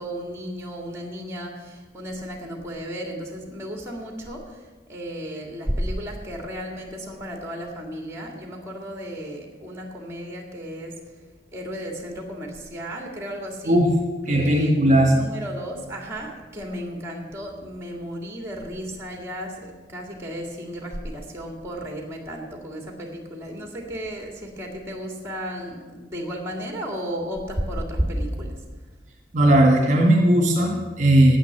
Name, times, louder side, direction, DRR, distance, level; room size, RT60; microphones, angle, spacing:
voice 1, 0.0-13.8 14.3-28.6, equal, 15° right, 1 dB, 2.1 m, -33 dB
voice 2, 14.3-15.2 29.3-31.4, right 1 dB, 40° right, 0 dB, 1.8 m, -17 dB
10.0 x 9.4 x 8.0 m, 1.3 s
head